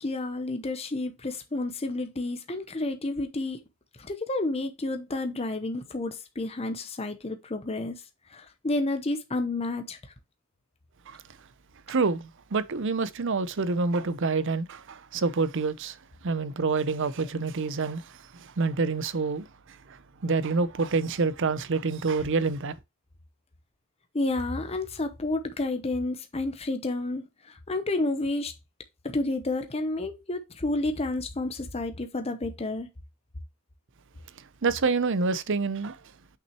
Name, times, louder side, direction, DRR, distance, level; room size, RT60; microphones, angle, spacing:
voice 1, 0.0-3.6 4.0-8.0 8.3-10.0 24.1-28.5 29.0-32.9, left 2 dB, 25° left, 0.8 m, -30 dB
voice 2, 11.9-16.0 16.2-22.7 34.6-36.0, right 4 dB, 55° right, 0.6 m, -27 dB
6.1 x 5.8 x 3.0 m
head